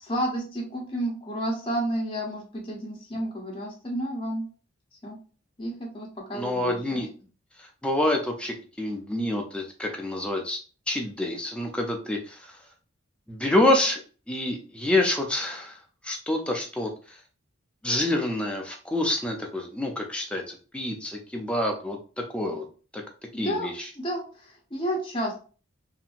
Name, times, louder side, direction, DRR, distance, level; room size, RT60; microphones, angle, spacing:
voice 1, 0.0-4.5 5.0-5.2 5.6-7.0 23.3-25.4, equal, 25° left, -2 dB, 0.8 m, -31 dB
voice 2, 6.3-7.1 7.8-10.6 10.9-12.5 13.3-14.0 14.3-15.8 16.0-16.9 17.8-22.0 22.3-22.7 22.9-23.0 23.4-23.7, left 1 dB, 5° left, 2 dB, 0.4 m, -27 dB
2.8 x 2.6 x 2.4 m, 0.38 s
head